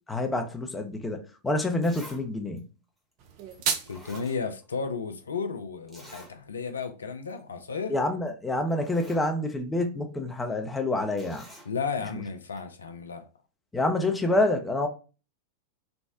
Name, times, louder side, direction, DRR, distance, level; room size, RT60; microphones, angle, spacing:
voice 1, 0.1-2.7 7.9-11.5 13.7-14.9, left 2 dB, 10° left, 0.5 m, -27 dB
Zipper (clothing), 1.8-2.2 2.6-2.7 3.5-3.6 3.9-4.9 5.1-5.2 5.9-6.3 6.8-6.9 7.2-7.4 8.3-8.4 8.7-9.3 11.2-11.7 12.6-12.7, equal, 10° right, 1.0 m, -48 dB
sound 1, 3.2-4.2, right 7 dB, 45° right, 0.5 m, -31 dB
voice 2, 3.9-8.0 11.7-13.3, left 5 dB, 70° left, 0.4 m, -33 dB
3.3 x 2.0 x 2.6 m
figure-of-eight pair, 90°, 0 cm